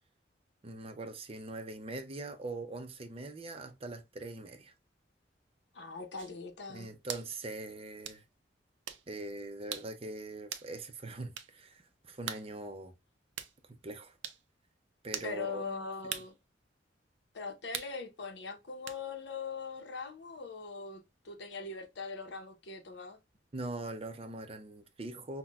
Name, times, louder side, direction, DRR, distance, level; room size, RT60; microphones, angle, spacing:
voice 1, 0.6-4.7 6.7-8.2 9.1-12.9 13.7-14.1 15.0-15.6 23.5-25.4, right 2 dB, 30° right, 0.5 m, -42 dB
voice 2, 5.7-6.9 15.2-16.3 17.3-23.2, left 4 dB, 70° left, 0.8 m, -41 dB
sound 1, 6.2-6.4 7.1-7.3 8.1-8.2 8.9-9.1 9.7-9.9 10.5-10.7 11.4-11.5 12.3-12.5 13.4-13.5 14.2-14.4 15.1-15.3 16.1-16.3 17.7-18.0 18.9-19.0, right 9 dB, 90° right, 0.5 m, -40 dB
5.7 x 2.2 x 2.3 m
head